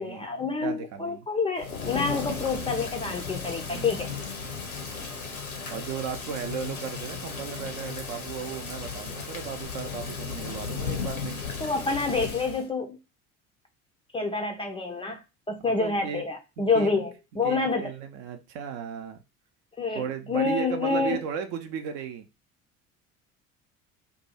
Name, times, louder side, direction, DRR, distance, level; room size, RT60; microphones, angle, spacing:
voice 1, 0.0-4.1 11.6-13.0 14.1-17.9 19.8-20.0 20.3-21.2, left 4 dB, 15° left, 3 dB, 0.4 m, -28 dB
voice 2, 0.6-1.3 3.7-4.0 5.7-11.4 15.8-16.2 16.6-17.0 17.4-19.2 19.9-22.3, right 7 dB, 55° right, 7 dB, 0.7 m, -35 dB
Thunder / Rain, 1.6-12.7, left 5 dB, 85° left, 0.7 m, -35 dB
2.6 x 2.3 x 4.1 m, 0.27 s
figure-of-eight pair, 60°, 41 cm